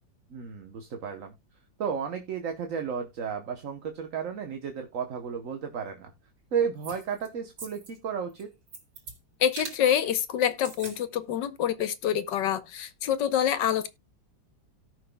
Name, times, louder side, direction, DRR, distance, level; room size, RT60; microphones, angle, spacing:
voice 1, 0.3-1.3 1.8-6.1 6.5-8.5, right 7 dB, 50° right, 1.2 m, -33 dB
sound 1, 6.8-7.3 7.6-8.0 8.3-9.2 9.5-9.8 10.5-11.0 11.3-11.4, right 4 dB, 80° right, 3.5 m, -42 dB
voice 2, 9.4-13.9, left 9 dB, 70° left, 1.4 m, -26 dB
17.5 x 5.8 x 2.2 m
omnidirectional pair, 2.1 m